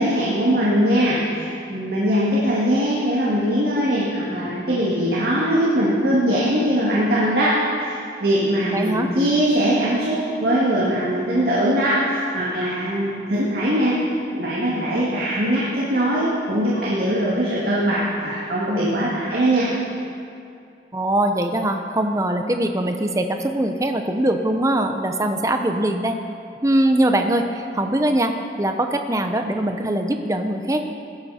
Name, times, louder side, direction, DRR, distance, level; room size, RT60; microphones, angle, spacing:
voice 1, 0.0-19.7, equal, 55° right, -7 dB, 2.3 m, -21 dB
voice 2, 8.7-9.1 20.9-26.2 26.6-30.8, right 1 dB, 20° right, 5 dB, 0.7 m, -22 dB
16.0 x 13.0 x 4.3 m, 2.5 s
head